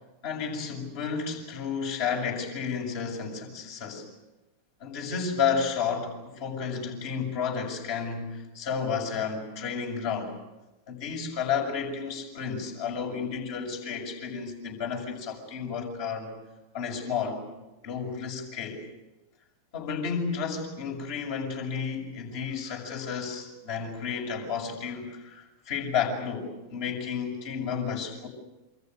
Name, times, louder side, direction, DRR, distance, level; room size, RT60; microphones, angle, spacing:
voice 1, 0.2-4.1 4.8-10.3 10.9-16.4 16.7-17.4 17.8-18.8 19.7-28.3, left 6 dB, 50° left, 1 dB, 6.8 m, -32 dB
28.0 x 25.0 x 6.5 m, 1.0 s
figure-of-eight pair, 90°, 0 cm